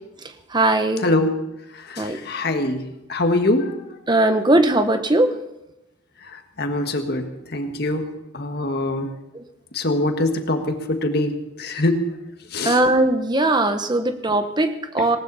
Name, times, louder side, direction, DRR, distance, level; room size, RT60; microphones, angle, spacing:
voice 1, 0.5-1.0 2.0-2.2 4.1-5.3 9.3-9.4 12.6-15.2, right 2 dB, 20° right, 8 dB, 1.0 m, -19 dB
voice 2, 1.0-1.4 1.7-2.8 3.1-3.7 6.2-9.1 9.7-11.3 11.6-12.1 12.5-12.8, left 2 dB, 50° left, 4 dB, 1.6 m, -23 dB
19.0 x 18.5 x 4.1 m, 0.92 s
head